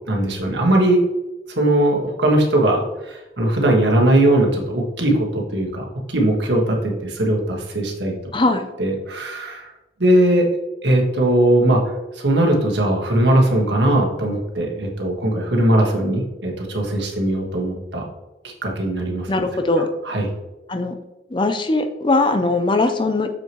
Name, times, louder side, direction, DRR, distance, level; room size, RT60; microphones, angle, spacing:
voice 1, 0.1-1.0 1.6-8.1 8.8-9.7 10.0-10.4 10.8-18.0 18.6-19.4 20.0-20.3, right 1 dB, 85° right, 0 dB, 1.6 m, -19 dB
voice 2, 8.3-8.6 19.3-19.9 20.7-21.0 21.3-23.3, left 2 dB, 25° left, 8 dB, 0.5 m, -20 dB
7.0 x 6.3 x 3.1 m, 1.0 s
head